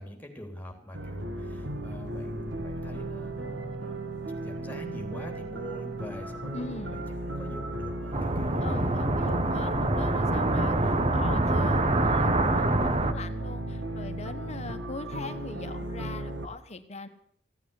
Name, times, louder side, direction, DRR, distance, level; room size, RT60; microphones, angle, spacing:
voice 1, 0.0-4.0 4.4-9.1, left 1 dB, 10° left, 3 dB, 3.2 m, -44 dB
sound 1, 0.9-16.5, right 1 dB, 75° right, 1.9 m, -35 dB
voice 2, 6.5-7.0 8.6-17.1, left 3 dB, 40° left, 8 dB, 1.2 m, -40 dB
sound 2, 8.1-13.1, right 2 dB, 35° right, 1.2 m, -25 dB
15.5 x 9.1 x 9.7 m, 0.66 s
head